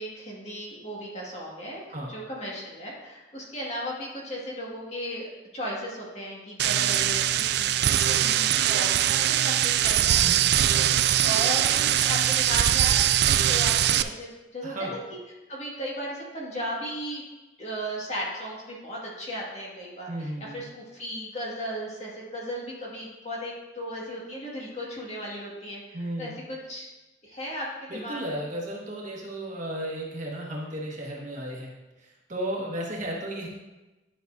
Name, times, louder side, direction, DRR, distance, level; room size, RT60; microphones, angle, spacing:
voice 1, 0.0-1.8 2.1-5.3 5.5-10.2 11.0-13.1 13.4-15.2 15.5-17.2 17.6-25.8 26.2-26.9 27.3-27.7 27.9-28.3, equal, 35° left, -4 dB, 1.9 m, -36 dB
voice 2, 1.9-2.2 10.2-10.5 14.6-15.0 20.1-20.6 25.9-26.4 27.9-31.7 32.0-33.5, right 1 dB, 45° right, -3 dB, 1.5 m, -34 dB
sound 1, 6.6-14.0, right 11 dB, 60° right, 0.3 m, -22 dB
11.0 x 6.1 x 2.7 m, 1.1 s
head